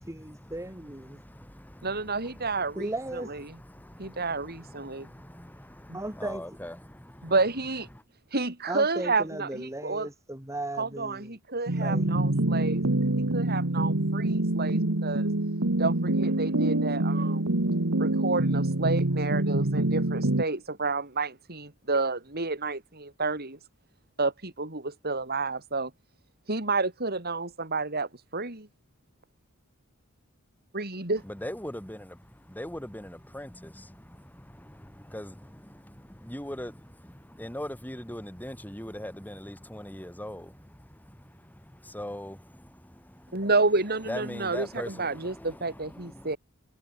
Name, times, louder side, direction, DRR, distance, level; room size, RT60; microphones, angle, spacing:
voice 1, 0.0-1.2 2.8-3.3 5.9-6.4 8.7-11.4 11.7-12.2, right 1 dB, 15° right, 2.1 m, -36 dB
voice 2, 1.1-2.7 3.7-7.1 31.2-43.5 44.1-46.4, left 1 dB, 10° left, 6.0 m, -41 dB
voice 3, 1.8-2.9 3.3-3.4 4.0-5.1 5.9-6.0 7.2-7.9 8.3-10.1 10.8-12.9 13.3-15.3 15.8-17.5 18.0-23.6 24.2-25.9 26.5-28.7 30.7-31.2 43.3-46.4, right 3 dB, 50° right, 6.1 m, -30 dB
sound 1, 11.7-20.4, right 1 dB, 85° right, 1.8 m, -26 dB
head